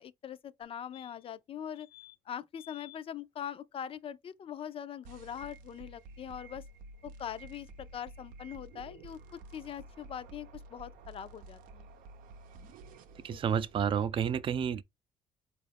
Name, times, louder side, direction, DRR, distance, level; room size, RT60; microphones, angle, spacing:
voice 1, 0.0-1.9 2.3-6.6 7.0-11.9 13.3-13.4, left 9 dB, 40° left, 0.4 m, -42 dB
sound 1, 0.6-0.7 0.9-1.4 1.7-2.2 2.5-3.0 5.4-5.5 5.7-5.8, left 18 dB, 85° left, 1.0 m, -54 dB
sound 2, 5.0-14.0, right 2 dB, 85° right, 0.6 m, -51 dB
voice 2, 13.2-14.8, right 8 dB, 40° right, 0.4 m, -30 dB
4.4 x 2.4 x 3.4 m
cardioid pair, 105°, 14 cm